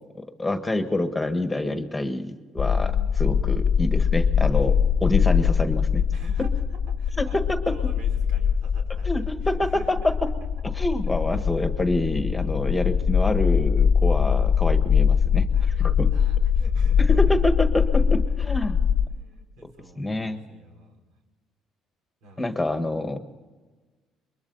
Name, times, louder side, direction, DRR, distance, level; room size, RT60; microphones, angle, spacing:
voice 1, 0.2-2.9 3.2-6.0 7.2-7.6 9.0-10.3 10.7-15.5 15.8-16.1 17.1-18.8 20.0-20.5 22.4-23.2, left 1 dB, 10° left, 7 dB, 1.5 m, -27 dB
sound 1, 2.6-19.1, left 7 dB, 40° left, 0.9 m, -22 dB
voice 2, 2.7-3.2 4.5-5.0 6.1-6.6 6.9-10.3 11.3-11.5 14.1-14.5 15.5-17.5 17.8-18.6 19.1-21.0 22.2-22.6 23.1-23.2, right 1 dB, 85° right, 3 dB, 5.1 m, -48 dB
29.0 x 22.5 x 4.1 m, 1.3 s
cardioid pair, 130°, 0 cm